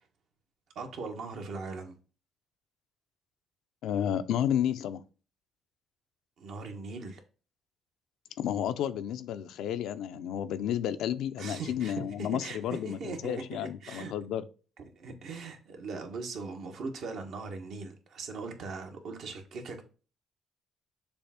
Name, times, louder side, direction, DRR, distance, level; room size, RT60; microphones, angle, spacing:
voice 1, 0.7-1.9 6.4-7.2 11.4-14.1 14.8-19.8, right 4 dB, 75° right, 1.4 m, -40 dB
voice 2, 3.8-5.0 8.4-14.4, left 10 dB, 85° left, 0.5 m, -31 dB
6.9 x 2.6 x 5.7 m
cardioid pair, 90°, 0 cm